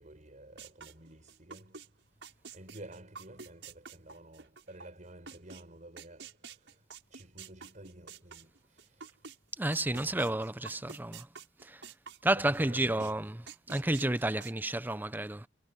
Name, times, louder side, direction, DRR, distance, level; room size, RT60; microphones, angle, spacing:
voice 1, 0.0-9.4 9.7-10.4 12.3-13.3, right 1 dB, 45° right, 4.9 m, -52 dB
sound 1, 0.6-1.9 2.2-5.6 6.0-9.4 9.7-12.3 12.5-13.1 13.5-14.5, right 5 dB, 85° right, 5.7 m, -48 dB
voice 2, 9.6-11.3 11.6-11.8 12.2-13.4 13.7-15.5, right 1 dB, 10° right, 0.8 m, -31 dB
head